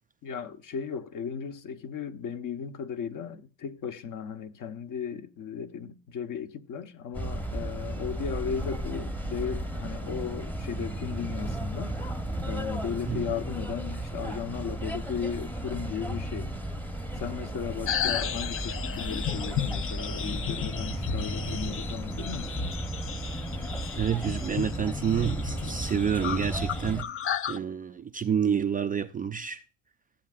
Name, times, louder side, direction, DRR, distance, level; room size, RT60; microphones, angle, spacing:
voice 1, 0.2-11.9 12.4-16.5 17.2-22.6, left 7 dB, 50° left, 1.1 m, -36 dB
sound 1, 7.1-27.0, right 1 dB, 5° left, 0.9 m, -34 dB
sound 2, 17.9-27.6, left 8 dB, 30° left, 0.6 m, -34 dB
voice 2, 24.0-27.1 27.5-29.6, right 8 dB, 20° right, 0.4 m, -28 dB
14.5 x 7.7 x 2.4 m
supercardioid pair, 95°, 43 cm